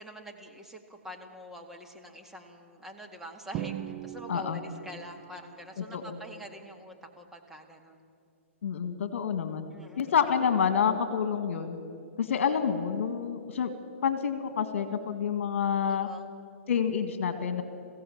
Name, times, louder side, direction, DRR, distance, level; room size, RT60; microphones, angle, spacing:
voice 1, 0.0-8.0 9.7-10.1 12.3-12.7 15.8-16.3, equal, 5° right, 1 dB, 1.9 m, -46 dB
Drum, 3.5-5.3, right 11 dB, 35° right, 0.9 m, -38 dB
voice 2, 4.3-4.6 5.8-6.2 8.6-9.7 10.0-11.8 12.2-13.7 14.0-16.1 16.7-17.6, left 7 dB, 65° left, 9 dB, 1.9 m, -28 dB
22.0 x 15.5 x 8.7 m, 2.3 s
hypercardioid pair, 125°, 7 cm